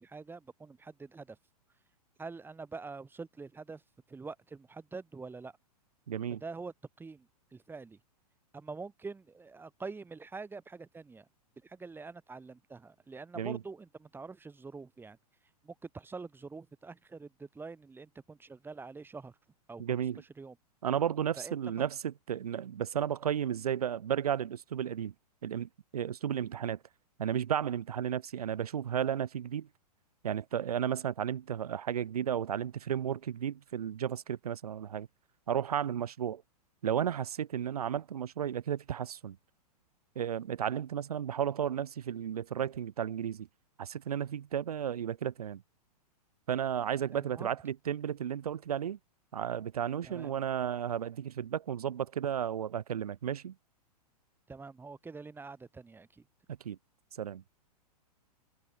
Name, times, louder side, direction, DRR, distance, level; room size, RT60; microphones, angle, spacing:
voice 1, 0.0-1.4 2.2-3.8 4.1-5.5 6.4-8.0 8.5-11.3 11.6-15.2 15.6-19.3 19.7-20.0 20.4-20.6 21.4-21.6 47.1-47.5 50.0-50.4 54.5-56.2, right 4 dB, 10° right, 4.1 m, -45 dB
voice 2, 6.1-6.4 13.4-13.6 19.8-20.2 20.8-25.1 25.4-26.8 27.2-29.7 30.2-35.1 35.5-36.4 36.8-39.4 40.2-43.5 43.8-45.6 46.5-49.0 49.3-53.6 56.6-56.8 57.2-57.4, right 9 dB, 70° right, 1.8 m, -33 dB
figure-of-eight pair, 105°, 20 cm